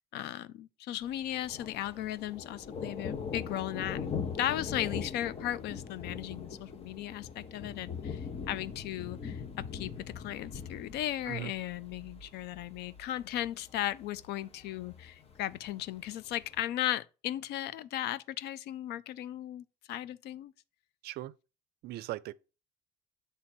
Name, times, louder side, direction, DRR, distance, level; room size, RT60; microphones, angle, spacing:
voice 1, 0.1-8.2 8.5-9.4 9.7-20.5, left 13 dB, 80° left, 0.5 m, -36 dB
Thunder, 1.0-16.6, left 6 dB, 35° left, 0.9 m, -42 dB
voice 2, 21.0-21.3 21.8-22.3, right 16 dB, 70° right, 0.4 m, -38 dB
7.3 x 3.4 x 4.3 m
cardioid pair, 110°, 17 cm